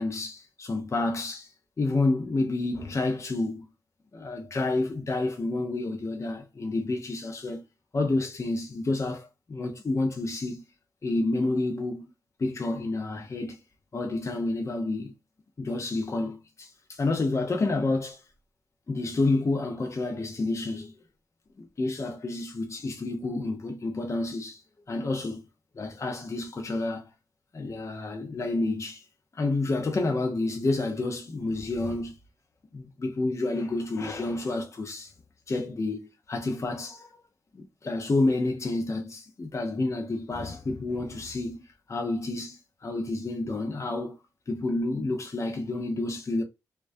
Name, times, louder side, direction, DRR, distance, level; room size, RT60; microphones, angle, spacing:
voice 1, 0.0-1.5 1.8-3.7 4.1-7.6 7.9-10.6 11.0-12.1 12.4-13.6 13.9-15.1 15.6-18.2 18.9-20.9 21.6-24.6 24.9-25.4 25.8-27.1 27.5-29.1 29.3-32.2 32.7-35.1 35.5-37.2 37.5-44.2 44.5-46.4, left 2 dB, 40° left, 0.6 m, -29 dB
2.2 x 2.2 x 2.5 m
supercardioid pair, 45°, 7 cm